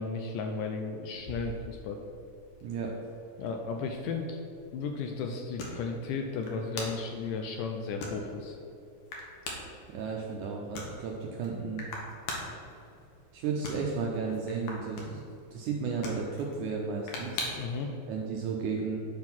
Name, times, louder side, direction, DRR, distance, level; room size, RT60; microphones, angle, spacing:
voice 1, 0.0-2.0 3.4-4.4 4.7-8.6 17.5-17.9, left 4 dB, 80° left, 3 dB, 1.9 m, -34 dB
sound 1, 1.1-17.8, left 2 dB, 65° left, 2.1 m, -44 dB
voice 2, 2.6-2.9 9.9-11.8 13.3-17.5 18.1-19.0, right 5 dB, 80° right, 0 dB, 1.8 m, -33 dB
9.7 x 3.8 x 5.9 m, 2.7 s
omnidirectional pair, 4.1 m